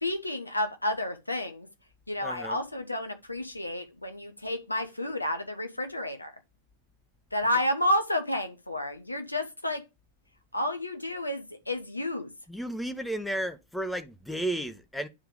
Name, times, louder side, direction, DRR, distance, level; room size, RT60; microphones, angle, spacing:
voice 1, 0.0-1.7 2.1-6.3 7.3-9.8 10.5-12.3, left 1 dB, 85° left, 0.9 m, -30 dB
voice 2, 2.2-2.6 12.5-15.1, right 1 dB, 5° left, 0.9 m, -33 dB
9.8 x 3.4 x 5.2 m
figure-of-eight pair, 90°, 0 cm